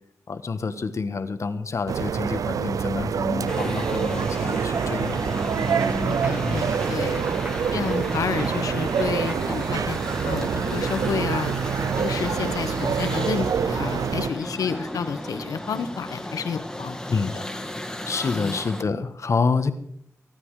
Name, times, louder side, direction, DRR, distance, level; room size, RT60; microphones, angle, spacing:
voice 1, 0.3-5.2 6.4-6.6 17.1-17.3 18.1-19.7, left 4 dB, 55° left, 10 dB, 1.5 m, -27 dB
sound 1, 1.9-14.3, right 7 dB, 75° right, 0.5 m, -26 dB
sound 2, 3.5-18.8, left 1 dB, 10° left, 2.2 m, -34 dB
Applause, 4.0-15.8, right 1 dB, 30° right, 2.1 m, -40 dB
voice 2, 6.0-7.3 7.7-10.0 10.2-11.5 12.0-17.4 18.3-18.5, left 6 dB, 80° left, 10 dB, 1.3 m, -30 dB
22.5 x 9.9 x 5.0 m, 0.68 s
cardioid pair, 60°, 6 cm